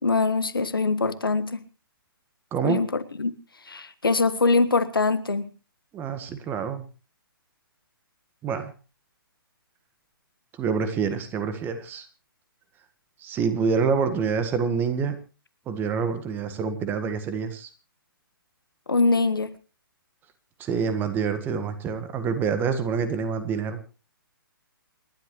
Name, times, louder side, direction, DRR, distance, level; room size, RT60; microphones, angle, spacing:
voice 1, 0.0-1.6 2.6-3.3 3.6-5.5 18.9-19.5, left 3 dB, 70° left, 13 dB, 1.6 m, -23 dB
voice 2, 2.5-2.8 5.9-6.8 8.4-8.7 10.5-12.1 13.2-15.2 15.7-17.7 20.6-23.8, right 6 dB, 15° right, 11 dB, 1.6 m, -27 dB
28.5 x 11.5 x 3.2 m, 0.34 s
figure-of-eight pair, 130°, 12 cm